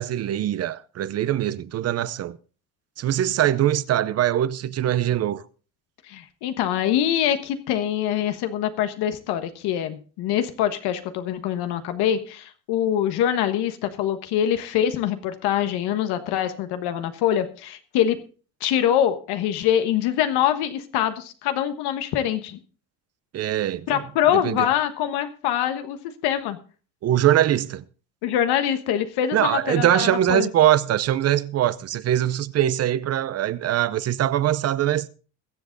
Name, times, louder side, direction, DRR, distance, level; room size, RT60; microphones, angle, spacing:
voice 1, 0.0-2.4 3.0-5.4 23.3-24.0 24.3-24.7 27.0-27.8 29.3-35.1, right 12 dB, 40° right, 0.7 m, -22 dB
voice 2, 6.1-18.2 18.6-22.6 23.9-26.0 26.2-26.6 28.2-30.5, left 10 dB, 85° left, 1.5 m, -24 dB
22.0 x 7.6 x 3.9 m
cardioid pair, 160°, 38 cm